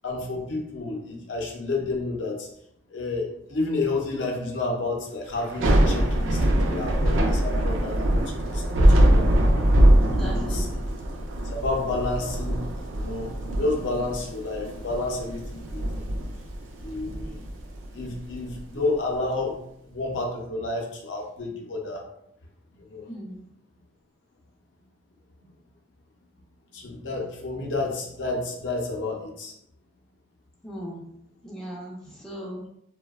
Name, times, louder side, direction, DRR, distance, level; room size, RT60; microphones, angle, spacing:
voice 1, 0.0-2.5 2.9-9.5 10.3-10.7 11.4-16.1 16.8-17.5 17.9-22.0 22.8-23.1 26.7-29.5, left 2 dB, 65° left, 0 dB, 0.5 m, -30 dB
Thunder / Rain, 5.4-18.6, right 1 dB, 75° right, 0.4 m, -23 dB
voice 2, 10.0-10.7 23.1-23.4 30.6-31.1 31.4-32.6, equal, 5° left, -4 dB, 0.4 m, -38 dB
2.6 x 2.1 x 2.3 m, 0.74 s
head